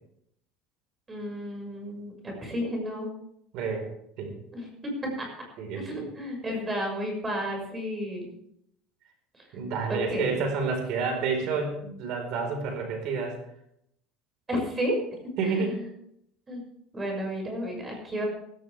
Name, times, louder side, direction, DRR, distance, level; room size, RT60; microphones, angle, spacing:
voice 1, 1.1-3.1 4.5-4.9 5.2-5.3 5.8-8.3 9.9-10.3 14.5-15.0 15.4-15.9 16.5-16.6 16.9-18.3, equal, 15° right, 2 dB, 6.1 m, -32 dB
voice 2, 3.5-3.9 4.2-4.3 5.6-6.1 9.5-13.4 15.4-15.8, right 4 dB, 60° right, 4 dB, 4.7 m, -29 dB
16.0 x 16.0 x 3.5 m, 0.74 s
cardioid pair, 145°, 0 cm